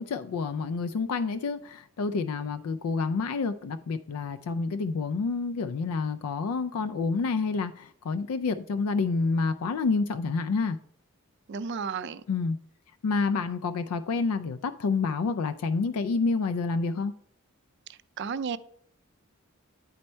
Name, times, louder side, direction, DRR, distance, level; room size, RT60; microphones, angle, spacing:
voice 1, 0.0-10.8 12.3-12.6 13.0-17.1, left 4 dB, 80° left, 0.4 m, -28 dB
voice 2, 11.5-12.2 18.2-18.6, right 6 dB, 50° right, 0.4 m, -32 dB
9.3 x 4.3 x 4.3 m
head